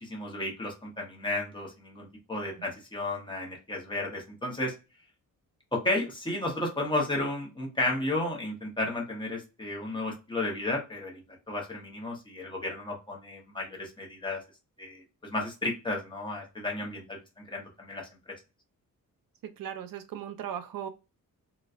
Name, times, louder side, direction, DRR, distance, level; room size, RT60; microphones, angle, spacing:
voice 1, 0.0-4.7 5.7-14.4 14.8-18.1, left 2 dB, 15° left, -2 dB, 0.8 m, -33 dB
voice 2, 19.6-20.9, right 9 dB, 80° right, 9 dB, 0.5 m, -37 dB
3.9 x 2.2 x 2.3 m, 0.28 s
wide cardioid pair, 180°, 34 cm